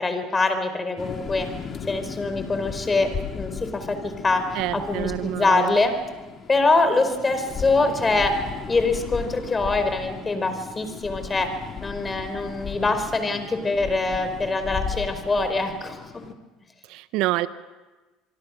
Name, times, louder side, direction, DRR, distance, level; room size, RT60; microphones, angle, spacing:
voice 1, 0.0-1.5 1.9-6.0 6.5-11.5 11.8-16.1, left 3 dB, 25° left, 9 dB, 4.6 m, -24 dB
sound 1, 1.0-16.3, left 6 dB, 40° left, 2.7 m, -36 dB
voice 2, 4.5-5.7 16.9-17.5, right 17 dB, 65° right, 15 dB, 0.9 m, -27 dB
25.5 x 24.0 x 6.4 m, 1.2 s
hypercardioid pair, 65°, 0 cm